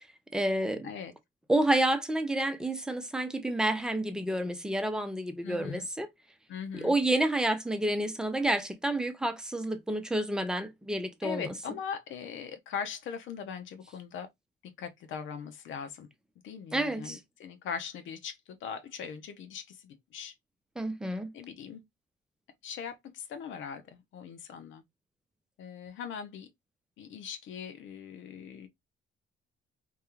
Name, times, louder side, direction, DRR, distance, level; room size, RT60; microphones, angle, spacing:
voice 1, 0.3-0.9 1.5-6.1 6.7-11.5 16.7-17.2 20.8-21.3, right 1 dB, 5° right, 0.5 m, -29 dB
voice 2, 5.4-5.9 6.5-7.0 11.2-14.3 14.6-16.1 16.4-20.3 21.3-21.8 22.6-24.8 25.6-26.5 27.0-28.7, left 7 dB, 75° left, 0.6 m, -40 dB
2.2 x 2.2 x 3.0 m
cardioid pair, 90°, 20 cm